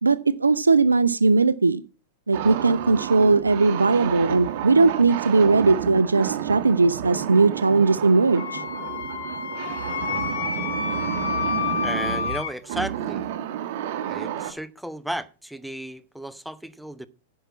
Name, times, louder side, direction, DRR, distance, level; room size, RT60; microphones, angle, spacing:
voice 1, 0.0-1.8 2.3-8.6, right 3 dB, 85° right, 0.5 m, -19 dB
sound 1, 2.3-14.5, right 10 dB, 55° right, 1.6 m, -31 dB
Wind instrument woodwind instrument, 8.4-12.5, left 6 dB, 75° left, 2.4 m, -29 dB
voice 2, 11.8-13.2 14.1-17.1, right 1 dB, ahead, 1.0 m, -34 dB
10.0 x 5.6 x 8.4 m
figure-of-eight pair, 100°, 0 cm